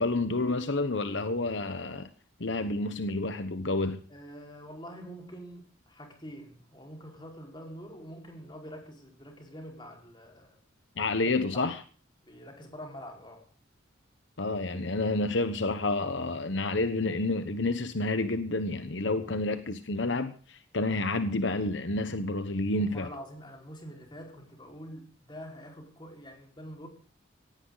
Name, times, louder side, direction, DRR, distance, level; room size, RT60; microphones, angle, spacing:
voice 1, 0.0-2.1 2.4-4.0 11.0-11.8 14.4-23.1, left 2 dB, 70° left, 1.1 m, -29 dB
voice 2, 4.1-10.6 11.2-11.7 12.2-13.4 22.8-26.9, equal, 25° left, 4.9 m, -45 dB
18.0 x 16.5 x 4.0 m
head